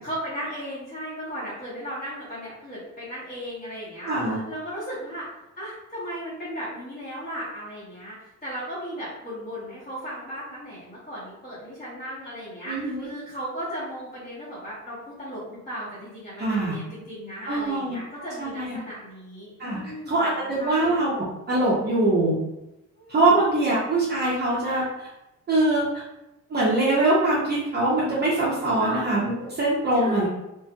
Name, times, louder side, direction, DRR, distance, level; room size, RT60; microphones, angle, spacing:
voice 1, 0.0-5.3 5.6-12.8 13.0-20.9 23.0-23.4 28.8-29.1 29.9-30.3, equal, 30° left, -11 dB, 1.1 m, -36 dB
voice 2, 4.0-4.4 12.7-13.1 16.4-16.7 17.5-18.8 19.6-19.8 20.1-22.4 23.1-25.1 25.5-26.0 26.5-30.3, right 2 dB, 35° right, -7 dB, 0.6 m, -23 dB
2.9 x 2.8 x 2.2 m, 0.92 s
cardioid pair, 140°, 31 cm